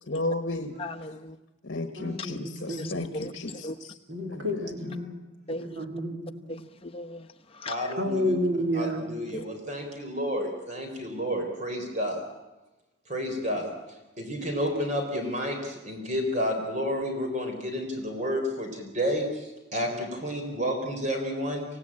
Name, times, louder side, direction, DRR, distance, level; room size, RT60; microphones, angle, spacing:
voice 1, 0.1-0.8 1.6-3.9 4.3-5.1, left 2 dB, 55° left, 1.4 m, -34 dB
voice 2, 0.8-1.4 2.8-3.3 3.6-3.8 5.5-5.8 6.5-7.9 9.3-9.4, left 1 dB, 30° left, 1.1 m, -38 dB
voice 3, 2.0-3.3 4.1-6.6 8.0-9.0, left 1 dB, 60° right, 3.5 m, -31 dB
voice 4, 7.7-8.3 8.7-12.2 13.1-13.7 14.2-21.7, equal, 35° right, 4.0 m, -30 dB
26.5 x 17.0 x 8.7 m
head